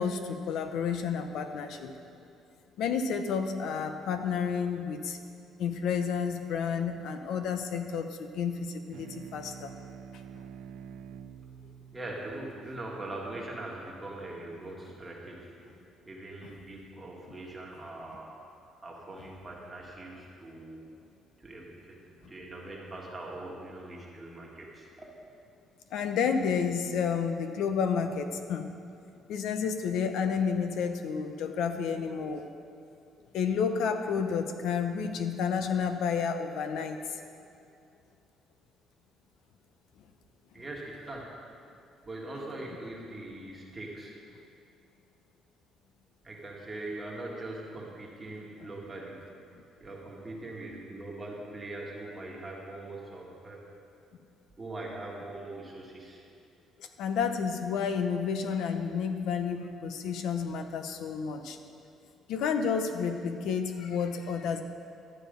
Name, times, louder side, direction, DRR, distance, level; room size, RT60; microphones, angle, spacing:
voice 1, 0.0-2.0 2.8-5.2 5.6-9.7 16.4-16.6 25.9-28.7 29.3-32.5 33.3-37.2 48.6-48.7 56.8-61.6 62.3-64.6, left 6 dB, 70° left, 7 dB, 0.8 m, -30 dB
sound 1, 8.9-13.8, right 8 dB, 75° right, 0.4 m, -48 dB
voice 2, 11.9-15.6 16.1-18.3 18.8-20.8 21.4-25.1 40.5-41.3 42.0-44.1 46.2-49.2 49.8-53.6 54.6-56.2, right 2 dB, 15° right, -4 dB, 1.7 m, -41 dB
12.5 x 9.3 x 5.2 m, 2.5 s
cardioid pair, 170°, 0 cm